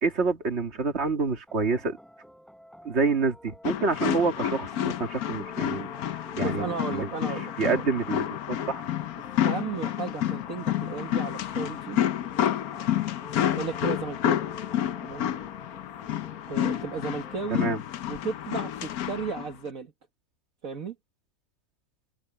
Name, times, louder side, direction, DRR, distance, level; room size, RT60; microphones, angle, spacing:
voice 1, 0.0-2.0 2.8-5.9 6.4-7.1 7.6-8.8 17.5-17.8, right 4 dB, 50° right, 2.4 m, -27 dB
sound 1, 1.5-17.7, equal, ahead, 4.0 m, -50 dB
sound 2, 3.6-19.5, left 11 dB, 80° left, 1.3 m, -29 dB
voice 2, 6.4-7.9 9.4-12.0 13.6-14.4 15.0-15.3 16.5-17.7 18.1-19.9 20.6-21.0, right 5 dB, 65° right, 2.1 m, -34 dB
omnidirectional pair, 1.5 m